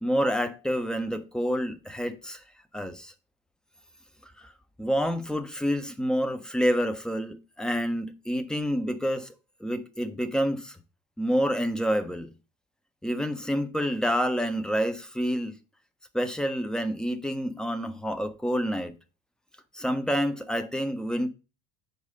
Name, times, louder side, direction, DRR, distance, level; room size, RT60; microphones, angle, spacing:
voice 1, 0.0-2.4 2.7-3.1 4.4-4.5 4.8-9.3 9.6-10.8 11.2-12.3 13.0-15.6 16.1-19.0 19.7-21.3, equal, ahead, 0.5 m, -28 dB
6.7 x 4.7 x 5.0 m
figure-of-eight pair, 70°, 46 cm